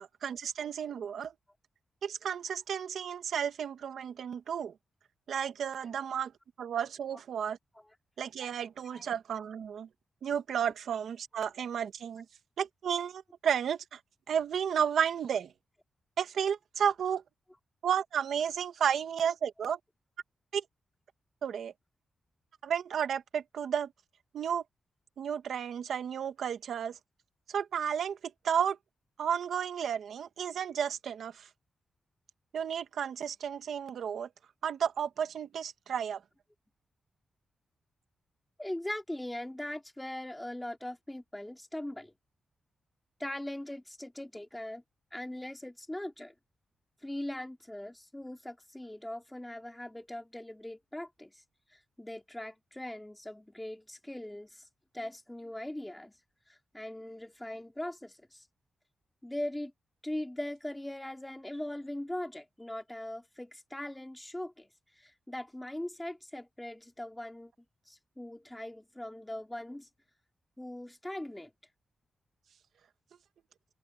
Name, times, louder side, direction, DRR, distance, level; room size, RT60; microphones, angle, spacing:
voice 1, 0.0-1.3 2.0-4.7 5.3-6.3 6.6-7.6 8.2-9.9 10.2-12.2 12.6-14.0 14.3-15.5 16.2-17.2 17.8-19.8 20.5-20.6 21.4-21.7 22.6-23.9 24.3-24.6 25.2-27.0 27.5-28.2 28.4-28.8 29.2-31.5 32.5-34.3 34.6-36.2, right 8 dB, 80° right, 1.6 m, -32 dB
voice 2, 38.6-42.1 43.2-44.8 45.1-46.3 47.0-51.4 51.7-54.7 54.9-56.1 56.5-58.5 59.2-59.7 60.0-64.7 64.9-67.5 67.9-69.9 70.6-71.5, left 1 dB, 10° left, 2.8 m, -40 dB
wide cardioid pair, 135°, 0 cm